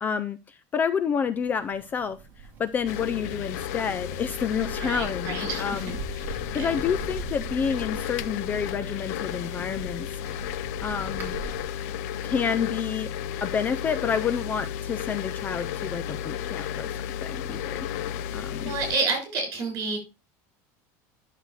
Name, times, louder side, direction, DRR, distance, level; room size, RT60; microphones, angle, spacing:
voice 1, 0.0-2.2 2.6-6.0 6.5-10.1 10.8-11.4 12.2-13.1 13.4-16.9 17.2-17.9 18.3-18.7, left 7 dB, 20° left, 13 dB, 0.3 m, -29 dB
sound 1, 1.4-11.6, right 5 dB, 20° right, 2.6 m, -42 dB
sound 2, 2.8-19.0, left 10 dB, 75° left, 0.6 m, -33 dB
voice 2, 4.8-6.0 6.3-6.8 18.6-20.0, right 3 dB, 40° right, 3 dB, 5.5 m, -30 dB
11.0 x 6.6 x 3.1 m, 0.28 s
cardioid pair, 175°, 9 cm